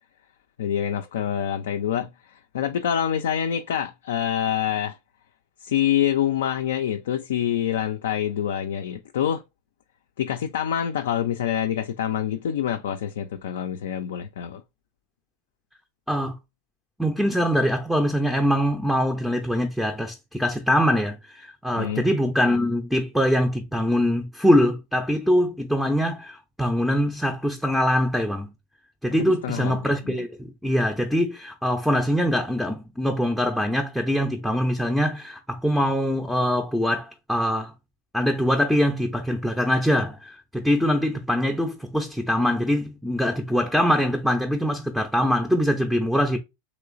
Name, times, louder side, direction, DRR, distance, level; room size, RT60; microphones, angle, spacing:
voice 1, 0.6-5.0 5.6-9.4 10.2-14.6 21.8-22.0 29.1-29.8 30.0-30.2, left 10 dB, 65° left, 0.3 m, -26 dB
voice 2, 16.1-16.4 17.0-28.5 29.0-37.7 38.1-46.4, equal, ahead, 0.4 m, -23 dB
3.1 x 3.0 x 2.4 m
figure-of-eight pair, 90°, 0 cm